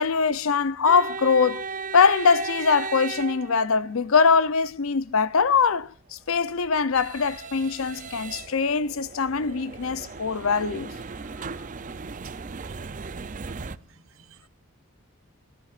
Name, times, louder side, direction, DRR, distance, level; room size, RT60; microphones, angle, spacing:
voice 1, 0.0-1.7 1.9-10.9, left 5 dB, 70° left, 0.6 m, -22 dB
sound 1, 0.9-4.1 6.1-13.8, right 5 dB, 35° right, 0.5 m, -37 dB
voice 2, 12.6-13.2 13.4-14.5, right 6 dB, 65° right, 1.2 m, -57 dB
19.0 x 13.5 x 2.5 m
head